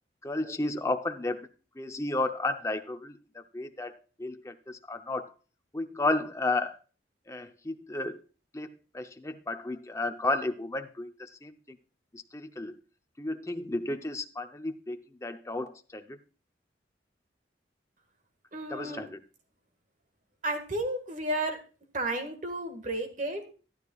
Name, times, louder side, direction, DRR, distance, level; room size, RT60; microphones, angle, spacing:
voice 1, 0.2-1.5 1.8-5.3 5.7-6.8 7.3-8.2 8.5-11.5 12.1-12.8 13.2-16.2 18.7-19.2, left 2 dB, 15° left, 7 dB, 0.6 m, -33 dB
voice 2, 18.5-19.1 20.4-21.6 21.9-23.5, right 1 dB, 45° right, 7 dB, 1.7 m, -32 dB
12.5 x 11.5 x 2.4 m, 0.35 s
head